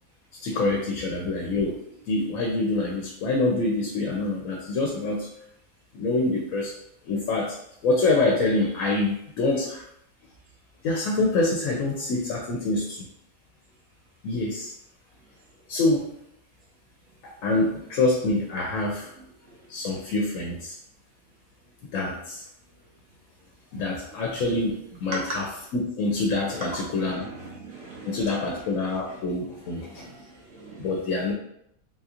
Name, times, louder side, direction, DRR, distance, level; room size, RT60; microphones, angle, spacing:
voice 1, 0.4-1.8 2.1-5.3 5.9-6.7 7.1-7.6 7.8-9.8 10.8-13.1 14.2-14.7 15.7-16.1 17.4-19.1 19.7-20.8 21.9-22.4 23.7-27.3 28.0-30.1 30.8-31.3, left 2 dB, 75° left, -1 dB, 0.9 m, -26 dB
voice 2, 26.6-28.6 29.1-29.2 29.9-31.0, right 2 dB, 65° right, -4 dB, 1.0 m, -40 dB
3.4 x 2.8 x 2.4 m, 0.74 s
omnidirectional pair, 1.5 m